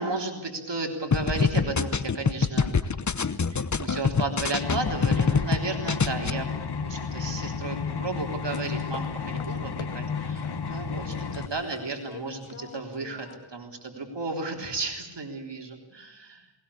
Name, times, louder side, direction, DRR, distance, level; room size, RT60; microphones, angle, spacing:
voice 1, 0.0-6.5 6.8-16.5, right 3 dB, 60° right, 3 dB, 3.7 m, -34 dB
sound 1, 1.1-5.6 5.9-6.3, left 5 dB, 40° left, 1.0 m, -25 dB
sound 2, 4.6-11.5, left 5 dB, 55° left, 1.3 m, -32 dB
sound 3, 8.2-9.9 10.4-13.4, left 6 dB, 90° left, 2.1 m, -45 dB
20.0 x 19.5 x 8.5 m, 1.0 s
wide cardioid pair, 60°, 47 cm